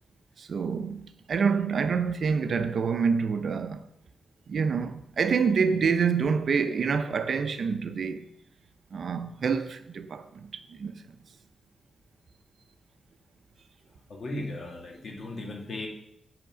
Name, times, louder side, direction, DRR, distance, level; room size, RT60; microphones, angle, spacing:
voice 1, 0.4-3.8 4.5-8.2 8.9-11.0, right 5 dB, 60° right, 0.7 m, -27 dB
voice 2, 14.1-15.9, left 2 dB, 50° left, 2.0 m, -36 dB
8.7 x 6.0 x 6.2 m
wide cardioid pair, 115°, 0 cm